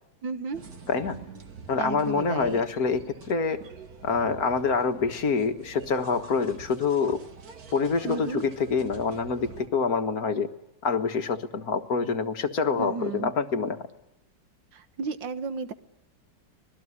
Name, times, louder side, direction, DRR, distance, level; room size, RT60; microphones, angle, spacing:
voice 1, 0.2-0.6 1.8-2.6 8.0-8.4 12.8-13.3 14.7-15.7, right 5 dB, 75° right, 11 dB, 2.0 m, -33 dB
sound 1, 0.5-9.7, right 6 dB, 50° right, 2.2 m, -46 dB
voice 2, 0.9-1.2 1.7-3.6 4.0-7.2 7.7-10.5 10.8-13.8, left 5 dB, 50° left, 8 dB, 1.9 m, -26 dB
25.5 x 19.5 x 9.9 m, 0.90 s
omnidirectional pair, 2.1 m